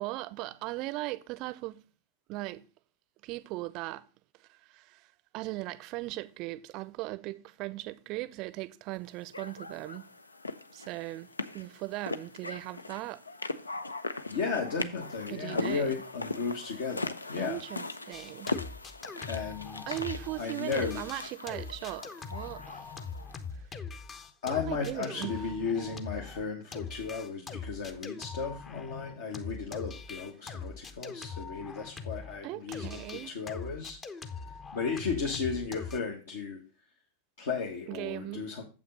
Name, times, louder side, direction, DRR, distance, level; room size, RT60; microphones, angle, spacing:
voice 1, 0.0-1.8 2.3-2.6 3.2-4.1 4.7-5.1 5.3-10.0 10.7-11.3 11.5-13.2 15.3-15.9 17.4-18.6 19.9-22.8 24.5-25.4 32.4-33.4 37.9-38.5, right 18 dB, 40° right, 0.6 m, -38 dB
sound 1, 9.3-23.4, left 2 dB, 80° left, 0.5 m, -40 dB
voice 2, 14.3-17.6 19.3-20.0 20.4-21.0 24.4-34.0 34.7-36.6 37.4-38.6, left 5 dB, 60° left, 1.4 m, -34 dB
sound 2, 18.1-20.5 20.7-32.4 32.7-36.0, left 5 dB, 25° left, 0.8 m, -42 dB
7.5 x 5.9 x 5.4 m
figure-of-eight pair, 90°, 0 cm